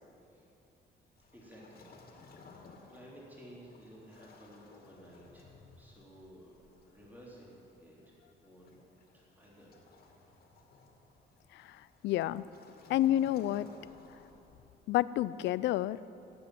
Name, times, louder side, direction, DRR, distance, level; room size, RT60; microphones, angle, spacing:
Waves surf, 1.2-14.8, left 3 dB, 55° left, 2.5 m, -58 dB
voice 1, 1.3-5.5 5.8-6.5 6.9-8.8 9.1-9.8 10.1-10.3, equal, 10° right, -5 dB, 3.6 m, -55 dB
voice 2, 12.0-12.4 12.9-13.7 14.9-16.0, left 13 dB, 90° left, 18 dB, 0.4 m, -29 dB
16.5 x 8.7 x 9.4 m, 2.9 s
cardioid pair, 120°, 18 cm